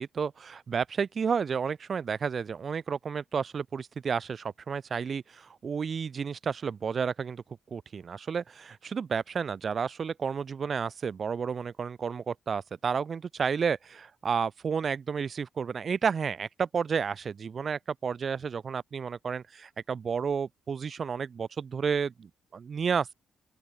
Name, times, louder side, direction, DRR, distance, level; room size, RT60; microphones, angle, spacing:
voice 1, 0.0-7.4 7.7-23.1, right 6 dB, 45° right, 0.5 m, -31 dB
open air
cardioid pair, 90°, 0 cm